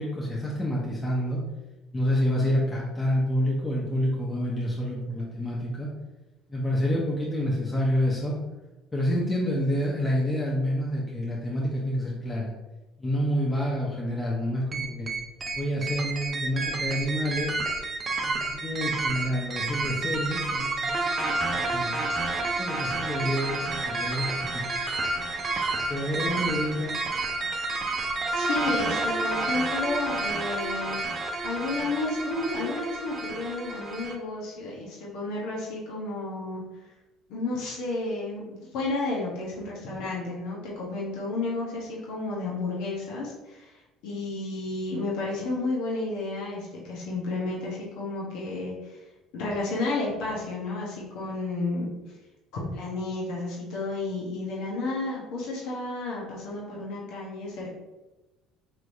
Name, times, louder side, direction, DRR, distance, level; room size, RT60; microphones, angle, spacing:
voice 1, 0.0-1.4 1.9-5.9 6.5-8.3 8.9-12.5 13.0-15.1 15.5-17.6 18.2-21.0 21.5-21.9 22.6-24.6 25.9-27.0, equal, 20° left, -4 dB, 1.0 m, -28 dB
sound 1, 14.7-34.1, right 3 dB, 35° right, 0.6 m, -30 dB
voice 2, 28.3-36.6 37.3-43.8 44.0-49.0 49.3-51.9 52.6-57.7, left 2 dB, 75° left, -4 dB, 1.2 m, -32 dB
4.9 x 3.1 x 2.7 m, 1.1 s
supercardioid pair, 80°, 0 cm